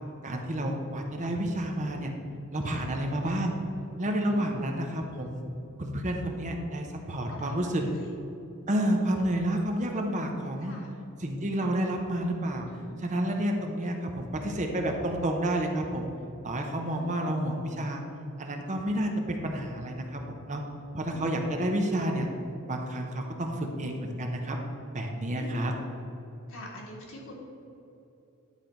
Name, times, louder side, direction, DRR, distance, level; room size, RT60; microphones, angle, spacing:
voice 1, 0.2-2.1 2.5-3.6 4.0-5.4 5.8-7.8 8.7-10.7 11.2-12.7 13.0-16.1 16.4-18.0 18.4-20.6 20.9-22.3 22.7-24.6 24.9-25.7, right 1 dB, 35° right, 2 dB, 0.8 m, -30 dB
voice 2, 4.3-4.7 7.3-8.1 10.6-10.9 12.7-13.1 16.9-17.4 21.1-21.5 25.3-25.7 26.5-27.3, left 1 dB, 65° left, -2 dB, 1.7 m, -45 dB
9.9 x 4.5 x 5.2 m, 2.8 s
head